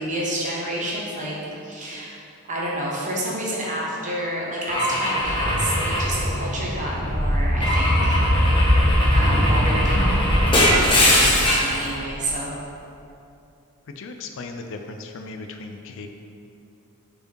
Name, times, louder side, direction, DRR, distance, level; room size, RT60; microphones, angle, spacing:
voice 1, 0.0-1.4 1.6-8.3 9.1-12.5, right 1 dB, 35° right, -4 dB, 1.2 m, -29 dB
Car / Engine / Glass, 4.7-6.9 7.6-11.8, left 1 dB, 25° left, 1.0 m, -22 dB
sound 1, 5.2-12.3, equal, ahead, 1.2 m, -22 dB
voice 2, 11.2-11.6 13.9-16.1, left 3 dB, 60° left, 5 dB, 0.4 m, -37 dB
5.1 x 4.7 x 4.6 m, 2.6 s
head